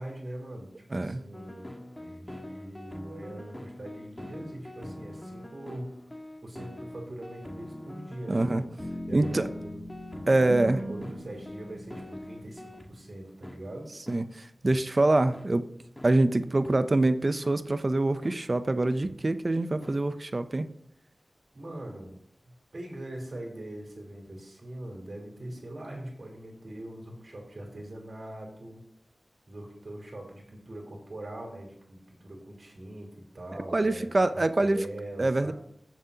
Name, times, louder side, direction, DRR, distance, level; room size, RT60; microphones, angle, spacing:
voice 1, 0.0-5.9 6.4-8.7 9.1-9.8 10.6-12.6 12.9-13.9 21.5-22.2 22.7-28.8 29.5-34.1 34.3-35.5, right 1 dB, 60° right, 0 dB, 3.5 m, -42 dB
voice 2, 0.9-1.2 8.3-8.6 9.1-9.5 10.3-10.8 14.1-15.7 16.0-20.7 33.7-34.9 35.2-35.5, right 2 dB, 45° right, 11 dB, 0.6 m, -25 dB
sound 1, 1.3-12.9 13.4-13.6 14.1-14.2 14.7-14.8 15.3-15.5 16.0-16.1 16.6-16.7 17.4-17.6 18.2-18.4 19.0-19.1 19.8-20.0, left 1 dB, 20° left, 1.5 m, -44 dB
sound 2, 8.8-12.8, left 1 dB, ahead, 2.3 m, -43 dB
Guitar, 10.5-13.5, right 1 dB, 80° right, 2.3 m, -42 dB
15.5 x 7.3 x 2.8 m, 0.69 s
wide cardioid pair, 60°, 0 cm